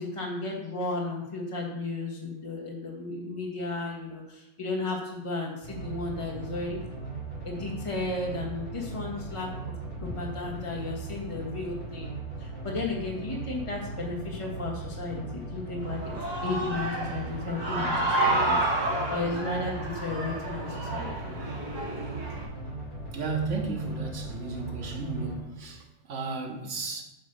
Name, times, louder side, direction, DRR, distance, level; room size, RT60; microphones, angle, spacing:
voice 1, 0.0-6.8 7.4-9.5 10.0-12.1 12.4-16.2 16.4-18.6 19.1-21.4, left 3 dB, 25° left, -2 dB, 1.5 m, -34 dB
Bass Loop Hollow Sun, 5.6-25.4, right 3 dB, 45° left, 2.9 m, -38 dB
Human voice / Cheering, 15.8-22.4, right 2 dB, 35° right, 1.9 m, -30 dB
voice 2, 23.1-27.0, right 3 dB, 75° right, 1 dB, 1.5 m, -34 dB
8.7 x 3.1 x 6.4 m, 0.89 s
omnidirectional pair, 1.3 m